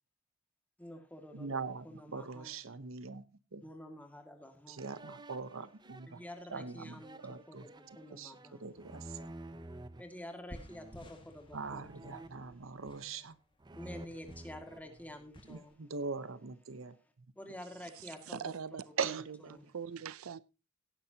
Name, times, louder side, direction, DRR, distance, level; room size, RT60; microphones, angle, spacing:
voice 1, 0.8-2.5 3.6-4.8 6.0-8.7 10.0-12.3 13.7-15.8 17.4-18.5 19.5-19.6, left 1 dB, 5° left, 2.0 m, -49 dB
voice 2, 1.3-3.2 3.5-3.6 4.7-6.2 6.5-9.3 11.5-13.3 15.5-17.0 19.0-19.2, right 5 dB, 70° right, 0.9 m, -41 dB
sound 1, 4.8-10.0 10.7-11.2 11.8-13.3 13.6-15.6, right 1 dB, 20° right, 0.6 m, -52 dB
sound 2, 10.5-15.7, equal, 25° left, 1.9 m, -55 dB
voice 3, 17.8-20.4, right 7 dB, 90° right, 0.5 m, -43 dB
17.5 x 10.0 x 2.8 m
head